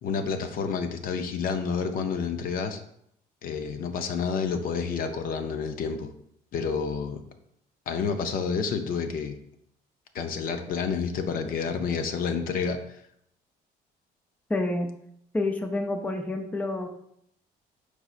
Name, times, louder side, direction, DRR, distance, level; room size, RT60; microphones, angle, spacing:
voice 1, 0.0-2.8 3.4-6.1 6.5-7.2 7.9-9.4 10.1-13.0, left 5 dB, 60° left, 7 dB, 0.5 m, -29 dB
voice 2, 14.5-14.9 15.3-16.9, left 2 dB, 10° left, 5 dB, 0.4 m, -28 dB
4.8 x 4.0 x 2.4 m, 0.72 s
cardioid pair, 110°, 17 cm